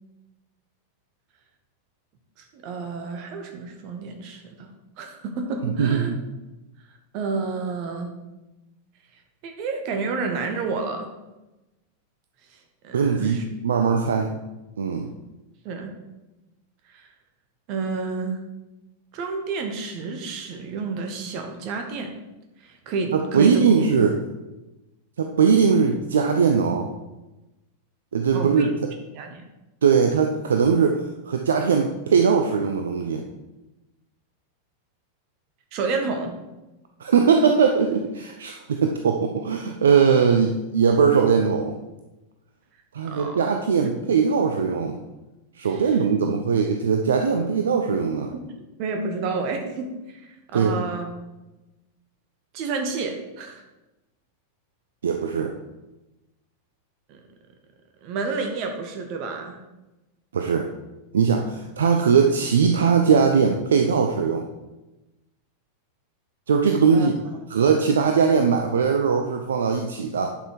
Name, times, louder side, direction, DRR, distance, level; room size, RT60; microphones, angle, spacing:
voice 1, 2.4-4.7 5.0-6.1 7.1-8.2 9.4-11.1 12.8-13.4 15.6-15.9 16.9-17.1 17.7-18.4 19.1-22.1 22.6-23.8 28.3-28.7 29.1-29.4 35.7-36.4 43.0-43.4 43.8-43.9 45.6-45.8 48.3-48.5 48.8-51.1 52.5-53.6 57.1-57.2 58.0-59.6 66.9-67.1, right 4 dB, 45° right, 4 dB, 1.7 m, -30 dB
voice 2, 5.6-6.2 12.9-14.4 14.8-15.1 23.1-24.2 25.2-26.9 28.1-28.9 29.8-33.2 37.0-41.7 42.9-45.0 45.6-48.3 50.5-50.8 55.0-55.5 60.3-60.7 61.1-64.5 66.5-67.1 67.5-70.4, right 6 dB, 65° right, 4 dB, 0.7 m, -20 dB
10.5 x 5.8 x 4.6 m, 1.0 s
figure-of-eight pair, 90°, 0 cm